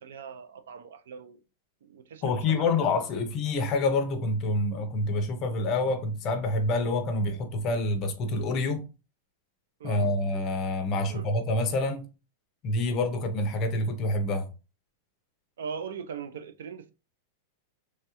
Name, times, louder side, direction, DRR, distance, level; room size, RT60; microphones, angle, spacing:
voice 1, 0.0-1.4 1.8-2.9 9.8-10.1 11.1-11.3 15.6-16.9, right 6 dB, 90° right, 0.4 m, -40 dB
voice 2, 2.2-8.8 9.8-12.1 12.6-14.5, left 2 dB, 25° left, 0.4 m, -27 dB
3.1 x 2.3 x 2.8 m
supercardioid pair, 175°, 0 cm